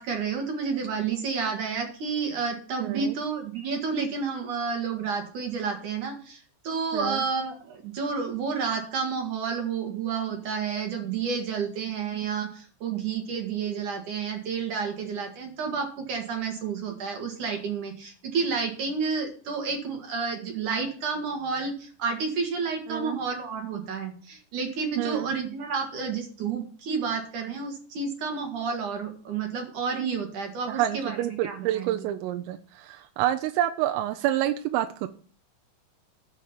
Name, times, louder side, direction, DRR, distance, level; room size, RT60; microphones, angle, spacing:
voice 1, 0.0-32.0, right 5 dB, 60° right, 2.2 m, -30 dB
voice 2, 2.8-3.1 6.9-7.2 22.9-23.2 25.0-25.3 30.7-35.1, right 13 dB, 90° right, 3.3 m, -28 dB
13.0 x 5.6 x 6.8 m
omnidirectional pair, 5.8 m